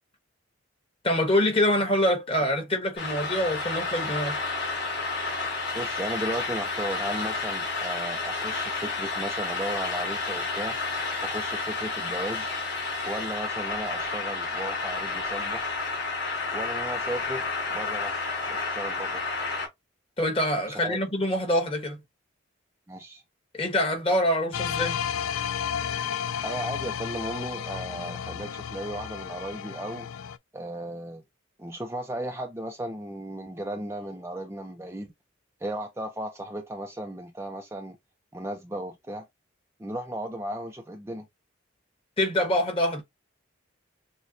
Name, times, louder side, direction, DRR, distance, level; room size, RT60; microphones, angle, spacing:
voice 1, 1.0-4.4 20.2-22.0 23.5-25.0 42.2-43.0, left 1 dB, 25° left, 1.3 m, -25 dB
sound 1, 3.0-19.7, left 3 dB, 55° left, 3.1 m, -31 dB
voice 2, 5.7-10.8 11.2-12.5 13.0-15.6 16.5-17.5 17.7-19.2 20.7-21.0 22.9-23.2 26.4-30.1 30.5-31.2 31.6-35.1 35.6-38.0 38.3-39.3 39.8-41.3, right 1 dB, 15° right, 0.4 m, -35 dB
sound 2, 24.5-30.4, left 8 dB, 90° left, 0.4 m, -32 dB
6.5 x 2.2 x 2.7 m
head